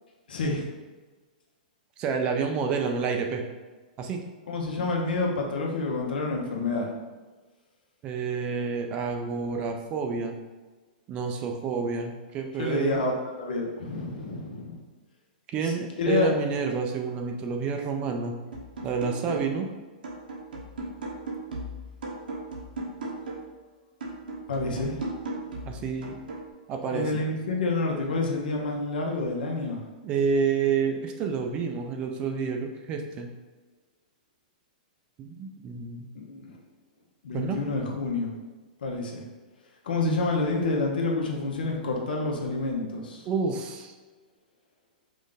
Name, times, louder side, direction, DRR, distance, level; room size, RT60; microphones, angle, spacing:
voice 1, 0.3-0.7 4.5-6.9 12.6-14.8 15.6-15.7 16.0-16.3 24.5-25.0 26.9-29.8 36.1-36.5 37.2-38.3 38.8-39.2 39.8-43.3, left 3 dB, 80° left, 0 dB, 1.1 m, -28 dB
voice 2, 2.0-3.4 4.0-4.2 8.0-10.4 11.1-13.0 15.5-18.4 18.8-19.7 25.7-26.2 26.7-27.1 30.0-33.3 35.2-36.1 37.3-37.6 43.3-43.9, right 5 dB, 20° right, 4 dB, 0.4 m, -29 dB
sound 1, 18.5-19.7 20.0-23.6 24.0-26.5, right 2 dB, 90° right, 1.1 m, -37 dB
5.2 x 2.5 x 3.9 m, 1.3 s
hypercardioid pair, 165°, 5 cm